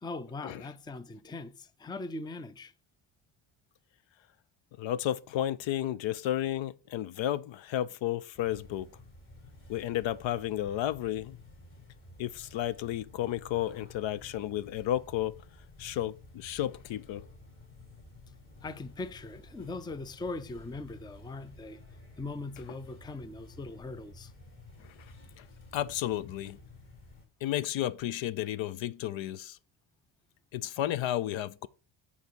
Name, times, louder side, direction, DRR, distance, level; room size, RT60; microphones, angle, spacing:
voice 1, 0.0-2.7 18.6-21.8 22.2-24.3, left 3 dB, 10° left, 0.4 m, -40 dB
voice 2, 4.8-8.9 9.7-11.4 12.2-15.4 15.8-17.3 24.8-24.9 25.4-25.5 25.7-26.6 27.4-29.6 30.5-31.7, left 12 dB, 70° left, 0.6 m, -32 dB
sound 1, 8.3-27.3, left 2 dB, 25° left, 2.8 m, -53 dB
9.4 x 4.2 x 4.5 m
cardioid pair, 100°, 48 cm